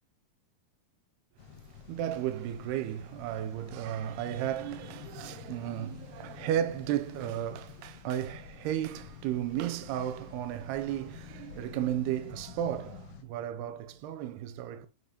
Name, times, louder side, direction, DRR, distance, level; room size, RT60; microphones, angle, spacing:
sound 1, 1.4-13.2, left 9 dB, 65° left, 2.4 m, -49 dB
voice 1, 1.4-14.9, right 11 dB, 90° right, 2.7 m, -34 dB
6.4 x 5.2 x 4.9 m
omnidirectional pair, 4.7 m